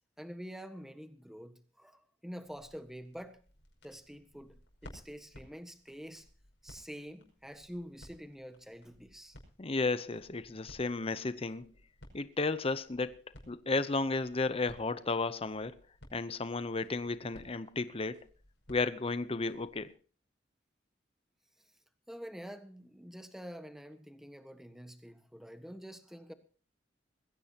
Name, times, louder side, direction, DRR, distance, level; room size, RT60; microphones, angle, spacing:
voice 1, 0.2-3.4 3.8-6.3 6.6-9.4 22.1-26.3, equal, ahead, 1.4 m, -47 dB
sound 1, 2.4-19.9, left 1 dB, 75° left, 5.7 m, -59 dB
voice 2, 9.6-11.7 12.1-13.2 13.5-15.8 16.1-18.2 18.7-19.9, left 3 dB, 30° left, 0.7 m, -33 dB
21.5 x 16.0 x 2.9 m
head